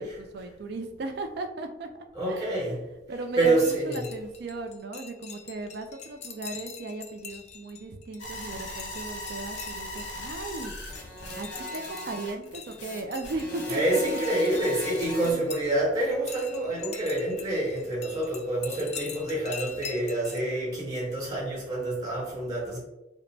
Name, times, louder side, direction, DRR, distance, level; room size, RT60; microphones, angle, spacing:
voice 1, 0.0-1.9 2.3-2.8 3.1-10.7 11.4-14.0 15.2-15.4, right 2 dB, 55° right, 6 dB, 0.4 m, -37 dB
voice 2, 2.1-2.8 3.4-4.0 13.7-22.8, right 1 dB, 20° right, -4 dB, 1.1 m, -27 dB
sound 1, 3.6-15.6 16.0-20.4, left 7 dB, 35° left, 0.4 m, -44 dB
sound 2, 8.2-15.3, left 1 dB, 65° left, 1.0 m, -38 dB
4.9 x 2.1 x 3.3 m, 0.94 s
head